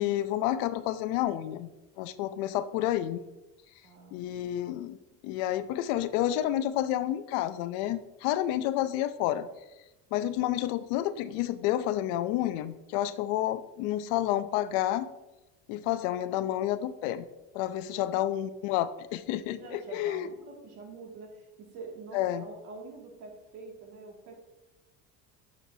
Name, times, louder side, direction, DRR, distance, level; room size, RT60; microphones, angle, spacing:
voice 1, 0.0-1.7 2.0-3.2 4.1-5.0 5.2-9.5 10.1-15.1 15.7-17.3 17.5-20.3 22.1-22.4, left 13 dB, 80° left, 13 dB, 0.6 m, -30 dB
voice 2, 3.8-4.3 17.8-18.3 19.6-24.4, right 4 dB, 55° right, 0 dB, 2.2 m, -46 dB
11.0 x 6.5 x 2.7 m, 1.0 s
cardioid pair, 145°, 29 cm